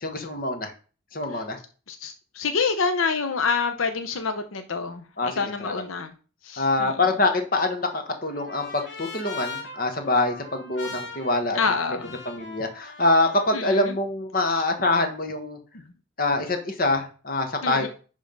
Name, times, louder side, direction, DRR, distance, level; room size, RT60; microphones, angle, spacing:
voice 1, 0.0-0.7 1.1-1.6 5.2-5.8 6.6-11.6 11.9-12.0 12.2-15.6 16.2-17.9, left 2 dB, 45° left, 6 dB, 1.4 m, -25 dB
voice 2, 1.9-5.0 5.4-6.1 6.4-7.0 11.5-12.1 13.5-13.9 17.6-17.9, left 5 dB, 85° left, 7 dB, 0.8 m, -27 dB
Trumpet, 7.7-13.6, left 3 dB, 65° left, 1.9 m, -41 dB
10.5 x 3.7 x 5.3 m, 0.38 s
head